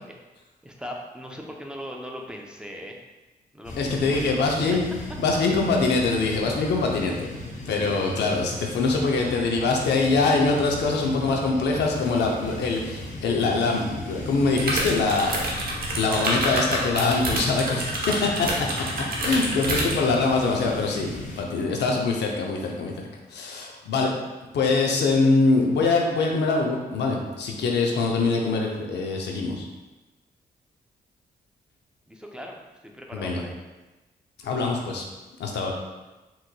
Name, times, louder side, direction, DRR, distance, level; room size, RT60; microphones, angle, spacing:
voice 1, 0.6-3.0 3.5-4.5 32.1-33.7, equal, 5° right, 0 dB, 0.5 m, -39 dB
sound 1, 3.6-21.4, left 1 dB, 45° left, 0.7 m, -37 dB
voice 2, 3.8-4.8 5.2-7.3 7.7-15.4 15.9-18.7 19.2-24.1 24.5-29.7 33.1-33.4 34.4-35.0 35.4-35.7, left 3 dB, 85° left, 1 dB, 0.5 m, -23 dB
sound 2, 14.6-20.0, right 1 dB, 60° right, 0.8 m, -27 dB
3.7 x 3.0 x 2.2 m, 1.1 s
cardioid pair, 65°, 17 cm